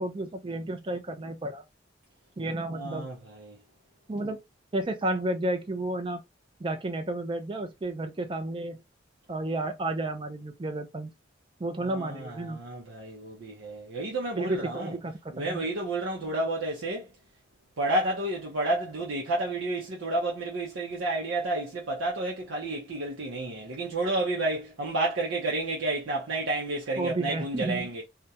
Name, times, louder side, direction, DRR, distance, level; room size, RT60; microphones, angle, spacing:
voice 1, 0.0-1.6 2.4-3.1 4.1-4.4 4.7-6.2 6.6-8.8 9.3-11.1 11.6-12.6 14.4-15.7 27.0-27.9, right 2 dB, 25° right, 0.4 m, -32 dB
voice 2, 2.7-3.6 11.8-14.9 15.3-17.1 17.8-28.0, right 2 dB, 85° right, 0.6 m, -31 dB
2.4 x 2.1 x 2.7 m
head